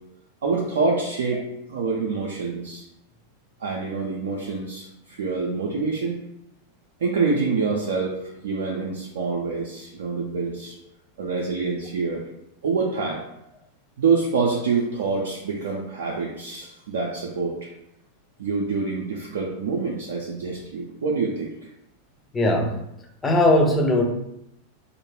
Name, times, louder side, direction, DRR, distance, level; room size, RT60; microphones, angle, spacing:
voice 1, 0.4-2.8 3.6-6.2 7.0-8.2 8.4-10.8 11.2-12.2 12.6-13.2 14.0-17.6 18.4-21.5, right 4 dB, 60° right, -2 dB, 0.3 m, -26 dB
voice 2, 22.3-22.7 23.2-24.0, left 1 dB, 15° left, 2 dB, 0.4 m, -19 dB
2.1 x 2.0 x 3.0 m, 0.81 s
figure-of-eight pair, 90°, 0 cm